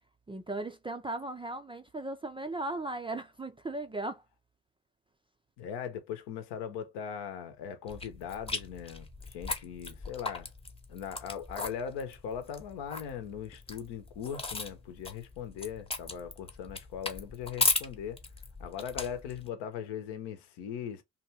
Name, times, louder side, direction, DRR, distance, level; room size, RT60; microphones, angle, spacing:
voice 1, 0.3-4.2, right 2 dB, 15° right, 0.4 m, -37 dB
voice 2, 5.6-10.5 10.9-18.2 18.6-21.0, left 8 dB, 65° left, 0.9 m, -39 dB
sound 1, 7.9-19.5, left 3 dB, 15° left, 0.9 m, -37 dB
2.7 x 2.3 x 2.7 m
hypercardioid pair, 55°, 44 cm